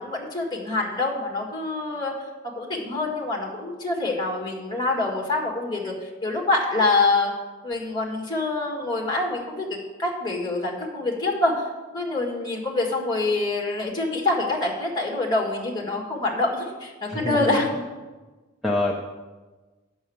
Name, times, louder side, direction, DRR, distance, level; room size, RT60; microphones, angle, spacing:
voice 1, 0.0-2.1 2.4-7.3 7.6-11.5 11.9-17.8, left 2 dB, 20° left, 0 dB, 1.8 m, -26 dB
voice 2, 17.1-17.6 18.6-18.9, left 1 dB, ahead, -3 dB, 0.7 m, -25 dB
8.8 x 6.2 x 7.0 m, 1.2 s
head